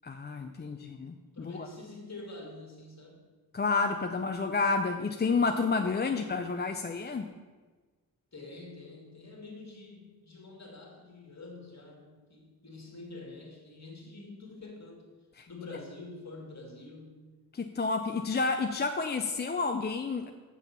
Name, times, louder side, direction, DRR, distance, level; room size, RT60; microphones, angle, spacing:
voice 1, 0.0-1.7 3.5-7.3 15.4-15.5 17.5-20.3, left 4 dB, 30° left, 5 dB, 0.4 m, -30 dB
voice 2, 0.5-1.0 1.3-3.2 6.0-6.4 8.3-15.0 15.5-17.3, left 2 dB, 45° left, 0 dB, 2.1 m, -47 dB
7.3 x 6.0 x 6.9 m, 1.3 s
wide cardioid pair, 125°, 39 cm